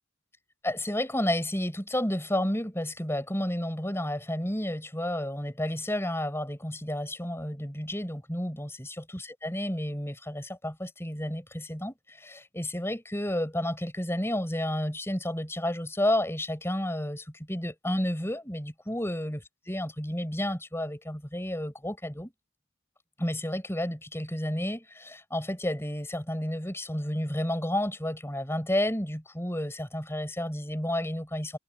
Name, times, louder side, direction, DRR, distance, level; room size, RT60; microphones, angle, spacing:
voice 1, 0.6-22.3 23.2-31.6, left 1 dB, 15° left, 7.3 m, -31 dB
head